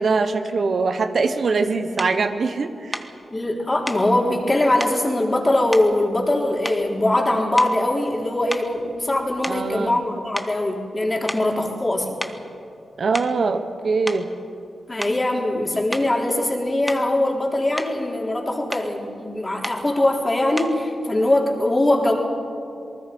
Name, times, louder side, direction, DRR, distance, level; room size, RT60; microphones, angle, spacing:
voice 1, 0.0-3.0 9.5-10.0 13.0-14.3, right 4 dB, 65° right, 8 dB, 1.2 m, -22 dB
sound 1, 2.0-2.2 2.9-3.1 3.9-4.1 4.8-5.0 5.7-6.3 6.6-7.0 7.5-7.9 8.5-10.1 10.3-10.6 11.3-11.5 12.2-12.4 13.0-13.4 14.1-14.3 15.0-15.3 15.9-16.1 16.9-17.2 17.5-18.0 18.7-18.9 19.6-19.9 20.6-20.8, equal, 5° right, 1.4 m, -33 dB
voice 2, 3.3-12.2 14.9-22.1, left 1 dB, 25° left, 0 dB, 3.8 m, -22 dB
27.5 x 19.5 x 5.4 m, 2.5 s
cardioid pair, 60°, 0 cm